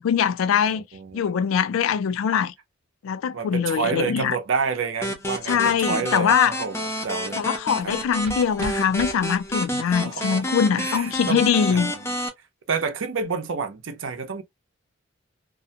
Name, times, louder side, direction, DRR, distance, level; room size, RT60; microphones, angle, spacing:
voice 1, 0.0-0.8 1.1-2.5 3.0-4.4 5.5-6.5 7.4-11.9, left 7 dB, 85° left, 0.3 m, -22 dB
voice 2, 0.7-1.3 3.3-7.4 7.8-7.9 10.0-12.1 12.7-14.4, right 5 dB, 70° right, 0.6 m, -29 dB
sound 1, 5.0-12.3, equal, 15° left, 0.4 m, -29 dB
sound 2, 7.8-9.8, right 1 dB, 30° right, 0.7 m, -40 dB
2.5 x 2.1 x 2.7 m
head